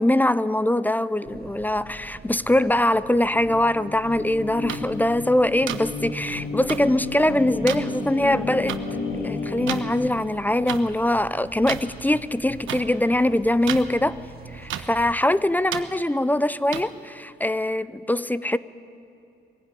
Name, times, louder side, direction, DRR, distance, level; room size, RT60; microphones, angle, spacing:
voice 1, 0.0-8.8 9.2-14.2 14.5-18.6, left 1 dB, 10° left, 0.5 m, -22 dB
sound 1, 1.3-15.1, right 4 dB, 50° right, 2.1 m, -45 dB
sound 2, 3.0-9.8, left 4 dB, 80° left, 3.7 m, -32 dB
sound 3, 4.7-4.8 5.7-5.8 6.7-6.8 7.7-7.8 8.7-8.8 9.7-9.8 10.7-10.8 11.7-11.8 12.7-12.8 13.7-13.8 14.7-14.8 15.7-15.8 16.7-16.8, right 11 dB, 75° right, 1.2 m, -29 dB
21.0 x 16.0 x 9.9 m
cardioid pair, 90°, 20 cm